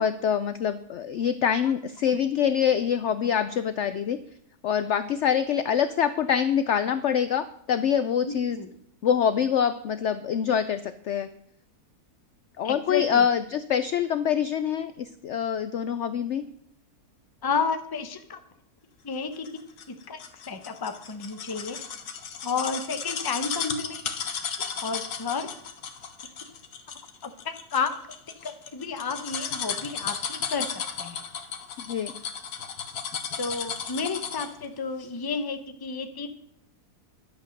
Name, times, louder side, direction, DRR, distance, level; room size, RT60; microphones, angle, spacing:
voice 1, 0.0-4.2 4.6-8.6 9.0-11.3 12.6-16.4 31.8-32.1, left 8 dB, 65° left, 11 dB, 0.7 m, -25 dB
voice 2, 8.2-8.7 12.6-13.3 17.4-18.4 19.0-19.5 19.9-21.8 22.4-24.0 24.8-25.5 27.2-27.9 28.4-30.7 31.0-31.2 33.4-36.5, left 5 dB, 20° left, 7 dB, 0.6 m, -31 dB
sound 1, 19.5-34.6 35.0-35.1, left 6 dB, 85° left, 1.6 m, -34 dB
11.5 x 8.1 x 6.5 m, 0.69 s
omnidirectional pair, 1.7 m